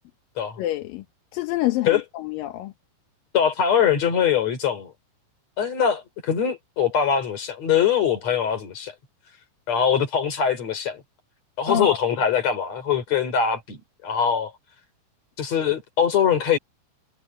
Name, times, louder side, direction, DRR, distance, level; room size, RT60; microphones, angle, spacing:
voice 1, 0.6-1.0 1.3-2.7 11.7-12.0, left 16 dB, 70° left, 2.3 m, -27 dB
voice 2, 3.3-4.9 5.6-8.9 9.7-11.0 11.6-14.5 15.4-16.6, left 7 dB, 40° left, 4.4 m, -22 dB
omnidirectional pair, 4.9 m